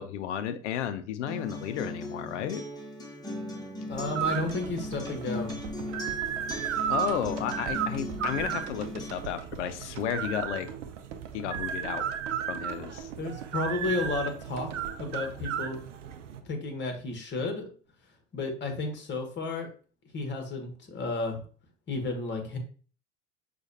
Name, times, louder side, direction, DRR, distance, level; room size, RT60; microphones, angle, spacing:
voice 1, 0.0-2.6 6.9-10.7 11.3-12.1 12.5-13.1, left 9 dB, 75° left, 11 dB, 0.6 m, -33 dB
Acoustic guitar, 1.3-9.3, left 1 dB, 10° left, 1.0 m, -39 dB
voice 2, 3.8-5.6 13.2-14.7 15.0-15.8 16.4-17.7 18.3-19.7 20.1-21.4 21.9-22.6, left 3 dB, 30° left, 4 dB, 1.2 m, -32 dB
sound 1, 3.9-16.4, right 8 dB, 85° right, 0.5 m, -35 dB
sound 2, 4.2-16.4 16.6-16.7, right 7 dB, 50° right, 0.7 m, -44 dB
6.2 x 2.5 x 2.7 m, 0.41 s
hypercardioid pair, 80°, 36 cm